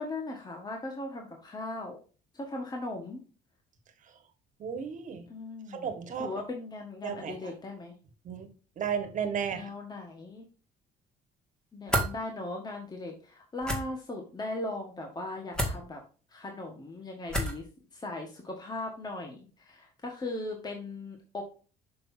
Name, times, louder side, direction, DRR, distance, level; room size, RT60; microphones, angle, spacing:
voice 1, 0.0-2.0 2.3-3.2 5.3-5.9 6.2-7.9 9.5-10.4 11.7-16.0 16.3-17.7 17.9-21.4, left 2 dB, 25° left, 2 dB, 1.5 m, -38 dB
voice 2, 4.6-5.2 5.7-6.3 7.0-7.3 8.2-8.5 8.8-9.6, right 7 dB, 50° right, 7 dB, 1.7 m, -33 dB
sound 1, 11.9-12.1 13.6-13.8 15.5-15.8 17.3-17.6, equal, 5° left, 2.0 m, -28 dB
6.7 x 5.9 x 2.7 m, 0.36 s
cardioid pair, 110°, 17 cm